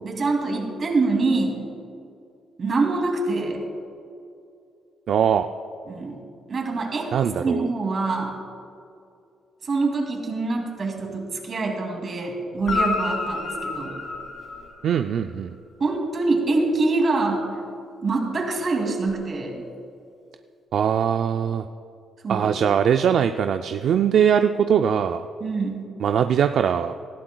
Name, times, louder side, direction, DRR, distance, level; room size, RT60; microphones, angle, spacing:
voice 1, 0.0-1.6 2.6-3.6 5.9-6.2 6.5-7.1 7.4-8.3 9.6-14.0 15.8-17.5 18.0-19.6 22.2-22.6 25.4-25.8, right 3 dB, 45° right, 2 dB, 2.4 m, -25 dB
voice 2, 5.1-5.5 7.1-7.7 14.8-15.5 20.7-21.7 22.3-25.3 26.0-26.9, right 8 dB, 70° right, 7 dB, 0.3 m, -21 dB
Guitar, 12.6-15.2 19.0-19.1, left 3 dB, 50° left, 2.0 m, -29 dB
19.0 x 13.0 x 2.3 m, 2.5 s
cardioid pair, 90°, 0 cm